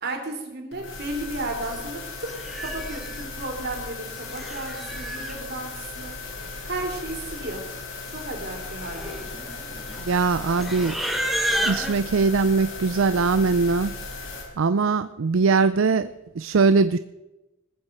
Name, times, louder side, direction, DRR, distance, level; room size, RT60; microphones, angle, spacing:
voice 1, 0.0-2.3 2.6-6.2 6.6-7.6 8.1-9.2, right 2 dB, 50° right, 3 dB, 3.2 m, -34 dB
sound 1, 0.7-14.4, left 3 dB, 75° left, 4.0 m, -37 dB
Livestock farm animals working animals, 1.7-1.9 2.3-3.2 4.1-5.4 6.4-6.5 6.7-7.1 7.4-7.7 8.4-11.9, right 1 dB, ahead, 1.3 m, -31 dB
voice 2, 10.0-11.0 11.6-13.9 14.6-16.1 16.4-17.0, right 4 dB, 70° right, 13 dB, 0.5 m, -21 dB
20.0 x 7.4 x 7.9 m, 1.0 s
head